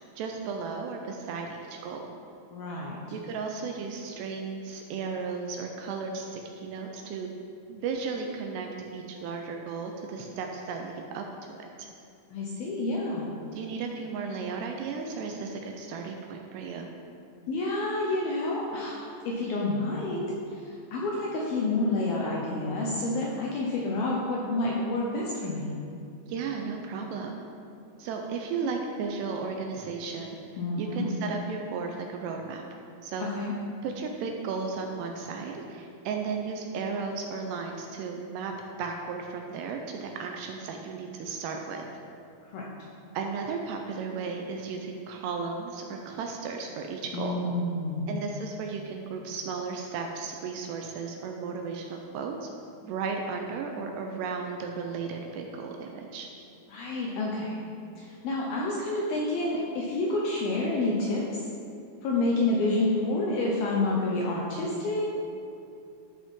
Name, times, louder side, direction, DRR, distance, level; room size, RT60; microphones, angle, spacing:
voice 1, 0.2-2.1 3.1-7.3 7.7-11.9 13.5-16.9 26.3-27.4 28.0-30.4 30.8-32.6 33.0-33.3 33.8-41.9 43.1-47.4 48.1-52.5 52.8-56.3, right 5 dB, 80° right, 2 dB, 2.5 m, -35 dB
voice 2, 2.5-3.0 12.3-13.3 17.5-25.7 30.6-31.1 33.3-33.5 42.5-42.7 47.1-48.1 56.7-57.6 58.0-61.5 62.0-65.2, left 2 dB, 80° left, -3 dB, 2.2 m, -29 dB
13.5 x 5.5 x 3.7 m, 2.6 s
omnidirectional pair, 5.2 m